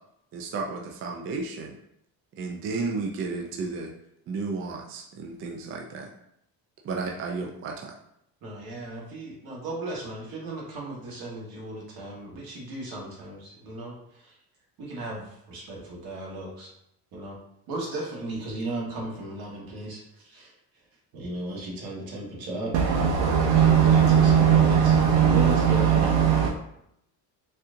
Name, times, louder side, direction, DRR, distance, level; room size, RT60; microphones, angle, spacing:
voice 1, 0.3-1.8 2.4-3.9 4.3-6.1 6.8-8.0, right 4 dB, 35° right, 0 dB, 0.4 m, -33 dB
voice 2, 8.4-14.4 14.8-16.7 17.1-17.4 17.7-20.5 21.1-22.7 23.5-26.5, right 1 dB, 60° right, -3 dB, 1.4 m, -36 dB
voice 3, 22.7-26.5, right 8 dB, 80° right, 0 dB, 0.7 m, -19 dB
4.2 x 2.4 x 2.6 m, 0.76 s
cardioid pair, 125°, 41 cm